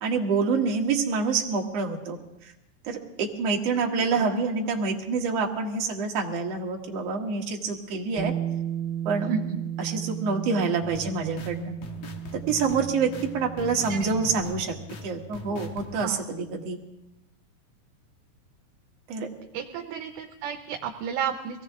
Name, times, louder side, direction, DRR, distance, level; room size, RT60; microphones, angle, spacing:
voice 1, 0.0-2.2 2.9-8.3 9.1-9.3 9.8-11.7 12.5-14.7 15.0-16.8 19.1-19.3, right 4 dB, 60° right, 1 dB, 2.4 m, -27 dB
voice 2, 3.8-4.3 9.3-9.4 13.9-14.1 15.9-16.2 19.5-21.6, right 7 dB, 85° right, 4 dB, 2.3 m, -32 dB
Bass guitar, 8.2-14.4, right 10 dB, 35° right, 1.2 m, -34 dB
sound 1, 10.8-16.1, left 2 dB, 60° left, 2.3 m, -41 dB
23.5 x 17.0 x 3.6 m, 0.93 s
omnidirectional pair, 3.6 m